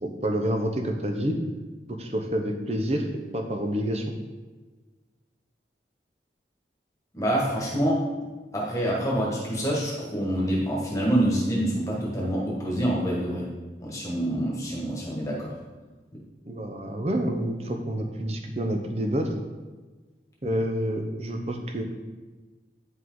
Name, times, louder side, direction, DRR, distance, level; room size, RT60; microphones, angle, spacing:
voice 1, 0.0-1.4 1.9-3.1 3.3-4.0 16.5-19.3 20.4-21.8, equal, 35° right, 3 dB, 0.8 m, -28 dB
voice 2, 7.1-8.0 8.5-13.5 13.8-15.5, right 1 dB, 20° left, -4 dB, 1.6 m, -26 dB
9.5 x 5.4 x 3.9 m, 1.3 s
head